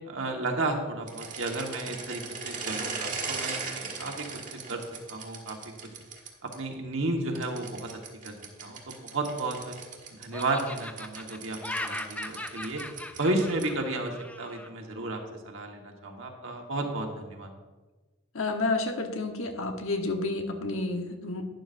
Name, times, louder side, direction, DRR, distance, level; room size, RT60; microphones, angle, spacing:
voice 1, 0.1-4.3 4.5-4.8 5.1-5.6 6.4-7.9 8.2-8.3 8.6-9.7 10.1-12.8 13.1-17.5, right 2 dB, 65° right, 2 dB, 1.5 m, -33 dB
sound 1, 1.0-6.6 7.4-13.8, right 4 dB, 40° right, 1.5 m, -39 dB
Laughter, 9.1-9.9 10.3-14.7, left 1 dB, 5° left, 0.4 m, -39 dB
voice 2, 18.3-21.5, left 2 dB, 75° left, 4 dB, 1.2 m, -30 dB
12.0 x 10.5 x 2.7 m, 1.2 s
head